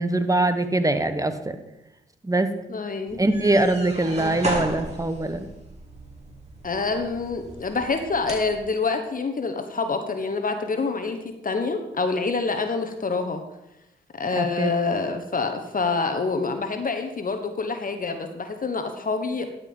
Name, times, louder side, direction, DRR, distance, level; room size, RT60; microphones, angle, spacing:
voice 1, 0.0-1.6 2.2-2.5 3.2-5.5 14.4-14.7, right 2 dB, 15° right, 10 dB, 1.2 m, -23 dB
voice 2, 2.7-3.2 4.2-4.4 6.6-13.4 14.1-19.5, left 4 dB, 45° left, 6 dB, 1.1 m, -27 dB
sound 1, 3.1-8.6, right 1 dB, 35° right, 3.2 m, -35 dB
11.0 x 5.5 x 5.4 m, 0.89 s
supercardioid pair, 40°, 20 cm